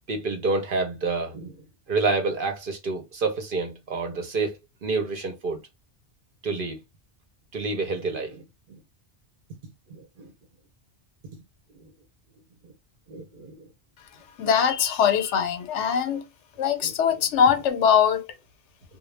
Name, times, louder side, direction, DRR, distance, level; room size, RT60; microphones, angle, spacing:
voice 1, 0.1-1.6 1.9-4.6 4.8-5.6 6.4-6.8 7.5-8.4 9.9-10.3 13.1-13.6 16.8-16.9, right 3 dB, 55° right, 0.8 m, -28 dB
voice 2, 14.4-16.2 16.6-18.2, left 7 dB, 80° left, 0.9 m, -22 dB
2.3 x 2.1 x 3.1 m
omnidirectional pair, 1.2 m